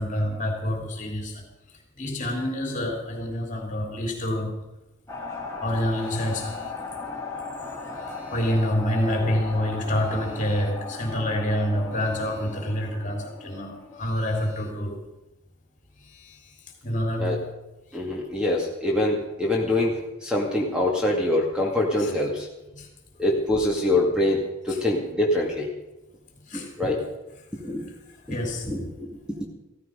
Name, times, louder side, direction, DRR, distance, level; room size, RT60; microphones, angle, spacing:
voice 1, 0.0-4.6 5.6-6.7 8.0-15.1 16.0-16.6 16.8-17.5 22.0-22.1 22.7-22.9 24.7-24.8 26.5-26.7 28.2-28.8, equal, 40° left, 2 dB, 3.3 m, -28 dB
sound 1, 5.1-14.0, left 3 dB, 15° left, 2.6 m, -37 dB
voice 2, 17.9-22.5 23.2-25.7 26.5-27.1 27.6-27.9 28.3-28.4 28.7-29.5, left 1 dB, 5° right, -1 dB, 2.1 m, -25 dB
15.5 x 14.5 x 5.2 m, 0.99 s
head